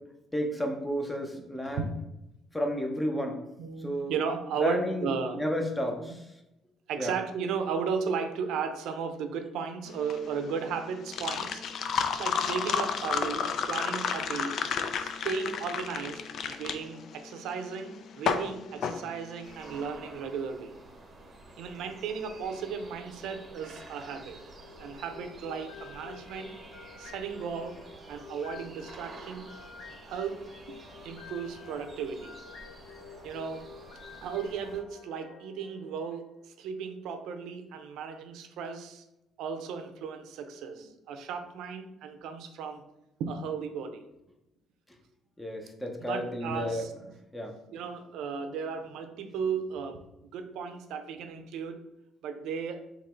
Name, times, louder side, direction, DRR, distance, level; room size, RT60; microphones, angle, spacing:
voice 1, 0.3-1.8 2.5-3.5 3.8-4.2 4.6-6.3 7.0-7.1 45.4-46.9 47.3-47.5, equal, 5° left, 3 dB, 0.6 m, -32 dB
voice 2, 3.6-5.6 6.0-6.2 6.9-11.6 12.2-14.6 15.0-20.7 21.6-24.4 24.8-26.5 27.0-27.8 28.1-29.5 30.0-30.8 31.0-32.4 33.2-33.7 34.2-39.0 39.4-42.8 43.2-44.0 46.0-46.9 47.7-51.8 52.2-52.8, right 6 dB, 75° right, 7 dB, 0.5 m, -35 dB
sound 1, 9.9-19.7, left 6 dB, 55° left, 0.3 m, -32 dB
sound 2, 19.4-34.8, right 2 dB, 25° right, 0.8 m, -50 dB
sound 3, 24.4-36.6, left 5 dB, 85° left, 0.7 m, -50 dB
3.9 x 3.0 x 4.3 m, 0.90 s
cardioid pair, 145°, 0 cm